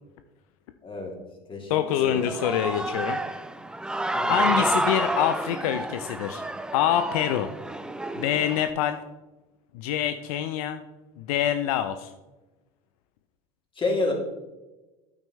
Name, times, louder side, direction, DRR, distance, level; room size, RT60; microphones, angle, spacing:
voice 1, 0.8-1.1 1.5-2.2 4.1-4.5 13.7-14.1, left 2 dB, 25° left, 0 dB, 2.8 m, -29 dB
voice 2, 1.7-3.2 4.3-6.4 6.7-7.5 8.2-9.0 9.7-10.8 11.2-12.1, left 10 dB, 75° left, 9 dB, 0.6 m, -25 dB
Human voice / Cheering, 2.1-8.7, right 1 dB, 5° right, 0.5 m, -29 dB
9.1 x 8.9 x 3.1 m, 1.1 s
hypercardioid pair, 95°, 19 cm